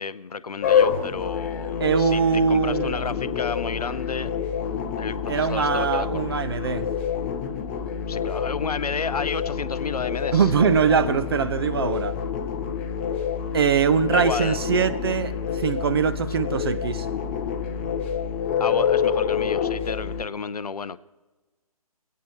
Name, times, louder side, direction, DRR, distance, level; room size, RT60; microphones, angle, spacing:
voice 1, 0.0-4.3 5.0-6.2 8.1-10.5 14.1-14.6 18.6-21.0, left 5 dB, 80° left, 0.5 m, -31 dB
sound 1, 0.6-20.2, left 7 dB, 20° left, 0.5 m, -27 dB
voice 2, 1.8-3.1 5.3-6.9 10.3-12.2 13.5-17.1, right 6 dB, 40° right, 0.5 m, -22 dB
19.0 x 9.2 x 3.0 m
figure-of-eight pair, 140°, 19 cm